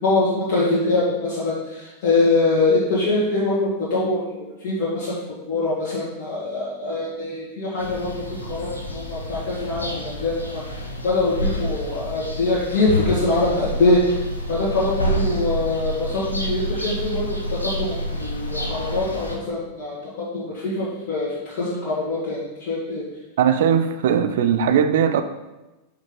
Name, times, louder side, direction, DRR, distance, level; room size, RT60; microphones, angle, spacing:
voice 1, 0.0-4.2 4.6-5.1 5.5-10.6 11.0-14.2 14.5-23.0, left 2 dB, 45° left, -8 dB, 1.5 m, -23 dB
sound 1, 7.8-19.4, equal, 85° left, 0.7 m, -28 dB
voice 2, 23.4-25.2, right 8 dB, 55° right, 9 dB, 0.4 m, -19 dB
5.4 x 4.6 x 3.9 m, 1.0 s
figure-of-eight pair, 90°, 0 cm